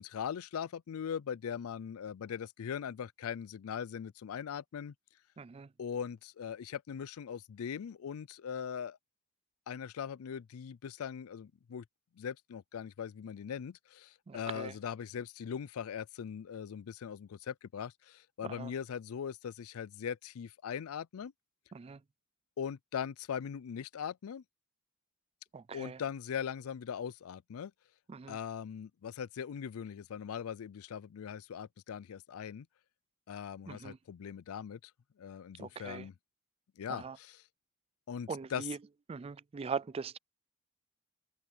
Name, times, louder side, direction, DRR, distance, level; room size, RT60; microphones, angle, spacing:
voice 1, 0.0-4.9 5.8-9.0 9.7-11.8 12.2-21.3 22.6-24.4 25.7-27.7 28.3-32.7 33.3-34.9 35.2-36.1 36.8-37.4 38.1-38.7, left 7 dB, 75° left, 0.4 m, -40 dB
voice 2, 5.4-5.7 14.3-14.7 18.4-18.7 21.7-22.0 25.5-26.0 28.1-28.4 33.7-34.0 35.6-36.1 36.9-37.2 38.3-38.8 39.1-40.2, right 5 dB, 25° right, 0.3 m, -41 dB
head